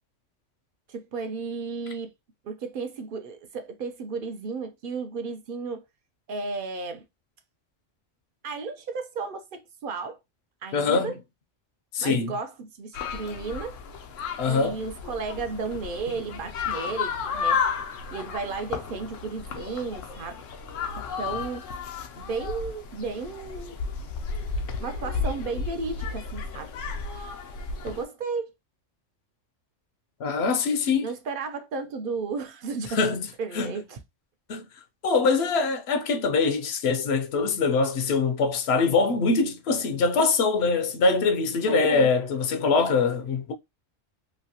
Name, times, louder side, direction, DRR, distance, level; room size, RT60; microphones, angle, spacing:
voice 1, 0.9-2.1 2.4-5.8 6.3-7.0 8.4-10.2 10.6-11.2 12.0-13.8 14.5-17.6 18.1-20.4 21.2-21.7 22.1-23.8 24.8-26.7 27.8-28.5 31.0-33.1 33.4-34.0 41.7-42.1, right 4 dB, 55° right, 0.6 m, -33 dB
voice 2, 10.7-11.2 11.9-12.3 14.4-14.8 30.2-31.1 33.0-33.2 33.6-33.7 34.5-34.6 35.0-43.5, left 4 dB, 65° left, 0.8 m, -23 dB
sound 1, 12.9-28.0, left 5 dB, 90° left, 1.0 m, -33 dB
3.1 x 2.8 x 2.7 m
omnidirectional pair, 1.3 m